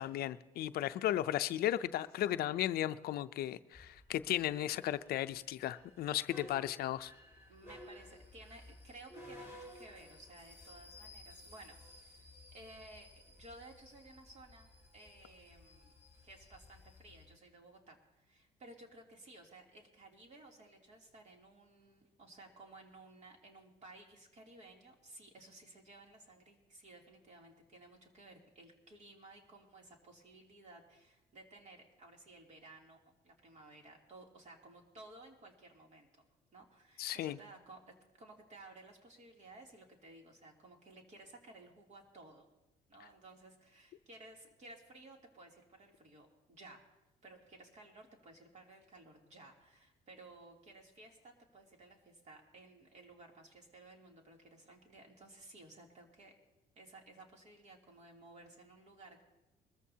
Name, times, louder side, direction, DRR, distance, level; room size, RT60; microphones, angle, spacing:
voice 1, 0.0-7.1 37.0-37.4, left 13 dB, 65° left, 0.5 m, -35 dB
sound 1, 3.7-17.3, left 1 dB, 15° right, 4.8 m, -56 dB
voice 2, 7.5-16.0 16.2-36.1 36.5-42.5 42.9-46.8 47.2-56.3 56.8-59.3, right 2 dB, 45° right, 2.9 m, -57 dB
22.0 x 14.0 x 2.8 m
cardioid pair, 110°, 17 cm